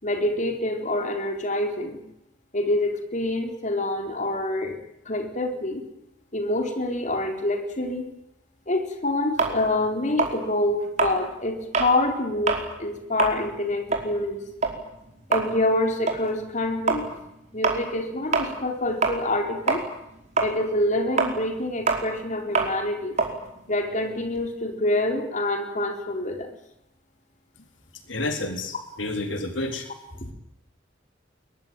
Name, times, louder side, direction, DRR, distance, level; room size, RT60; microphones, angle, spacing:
voice 1, 0.0-2.0 2.5-4.8 5.1-5.8 6.3-8.0 8.7-14.4 15.3-17.1 17.5-19.8 20.4-23.2 23.7-26.5, left 1 dB, 40° left, 4 dB, 4.4 m, -26 dB
sound 1, 9.4-12.0 12.4-12.7 13.0-19.4 19.7-24.5, right 4 dB, 40° right, 5.1 m, -27 dB
voice 2, 28.1-29.9, left 2 dB, 90° left, 6 dB, 3.6 m, -30 dB
23.5 x 22.0 x 9.2 m, 0.83 s
head